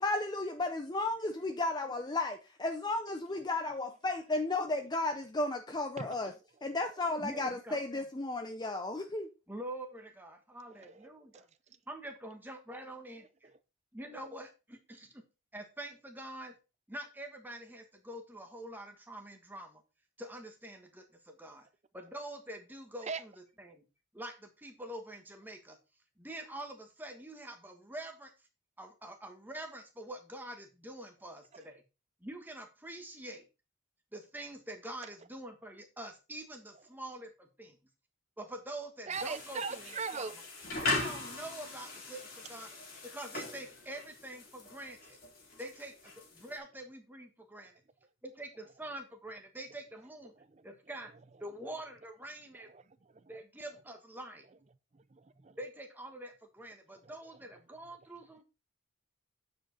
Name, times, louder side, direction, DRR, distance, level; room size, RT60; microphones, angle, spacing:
voice 1, 0.0-6.3 6.6-9.3, left 2 dB, 20° left, 0.6 m, -34 dB
voice 2, 7.2-7.8 9.5-11.5 11.9-13.5 13.9-15.2 15.5-16.6 16.9-19.8 20.2-21.7 21.9-23.8 24.1-25.8 26.2-28.3 28.8-31.8 32.2-33.4 34.1-37.8 38.4-40.3 40.8-42.7 43.0-45.2 45.6-47.7 48.2-50.3 50.6-51.1 51.4-52.7 53.3-54.5 55.6-58.4, right 1 dB, 10° right, 1.3 m, -45 dB
voice 3, 10.8-11.1 11.3-11.4 13.4-13.5 23.1-23.2 39.1-40.3 47.6-47.7 52.7-52.8 53.2-53.4 55.1-55.6, right 5 dB, 35° right, 0.5 m, -39 dB
sound 1, 39.1-46.6, left 2 dB, 45° left, 2.8 m, -40 dB
8.7 x 5.2 x 3.9 m
head